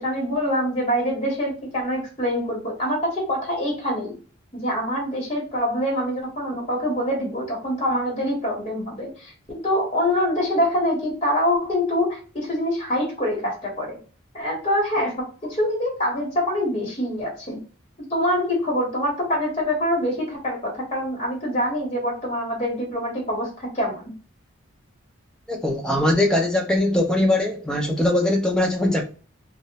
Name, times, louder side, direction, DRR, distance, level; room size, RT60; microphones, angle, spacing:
voice 1, 0.0-4.2 4.5-14.0 14.3-17.6 18.1-24.1, equal, 30° left, 1.0 m, -25 dB
voice 2, 25.5-29.0, left 1 dB, 5° left, 0.4 m, -21 dB
2.6 x 2.0 x 2.8 m
head